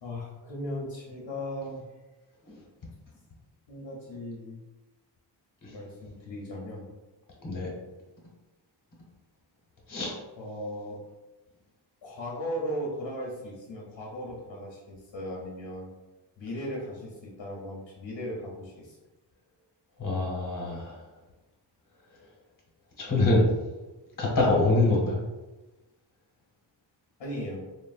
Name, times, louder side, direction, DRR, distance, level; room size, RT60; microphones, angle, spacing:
voice 1, 0.0-1.9 3.7-4.6 5.7-6.9 10.4-11.0 12.0-15.9 16.4-19.0 27.2-27.7, equal, 70° left, -3 dB, 0.7 m, -37 dB
voice 2, 20.0-21.0 23.0-23.5 24.2-25.2, left 2 dB, 45° left, -3 dB, 1.0 m, -25 dB
3.1 x 2.2 x 2.4 m, 1.1 s
wide cardioid pair, 110°, 44 cm